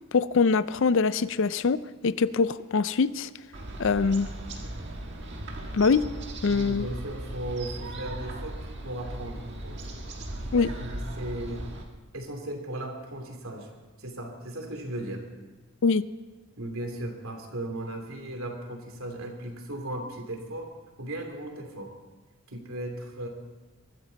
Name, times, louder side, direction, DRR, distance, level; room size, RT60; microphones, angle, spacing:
voice 1, 0.1-3.3 3.8-4.3 5.7-6.0 6.4-6.9 10.5-10.7 15.8-16.0, left 4 dB, 55° left, 16 dB, 0.4 m, -23 dB
sound 1, 3.5-11.8, right 1 dB, 50° right, 1.7 m, -38 dB
voice 2, 6.5-9.8 10.6-11.6 12.1-13.7 14.0-15.3 16.6-20.7 21.0-21.9 22.5-23.3, right 1 dB, 70° right, 3 dB, 2.9 m, -36 dB
22.5 x 13.5 x 4.1 m, 1.3 s
head